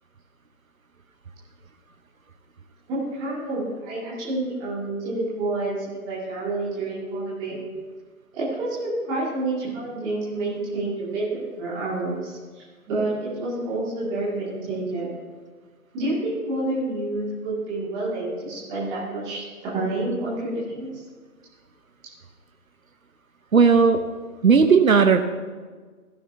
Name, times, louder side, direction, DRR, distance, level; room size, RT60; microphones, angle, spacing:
voice 1, 2.9-7.6 8.3-15.1 15.9-21.0, right 2 dB, 10° right, -7 dB, 2.2 m, -29 dB
voice 2, 23.5-24.0 24.4-25.2, right 5 dB, 65° right, 7 dB, 0.9 m, -15 dB
16.0 x 14.5 x 2.7 m, 1.5 s
figure-of-eight pair, 160°, 45 cm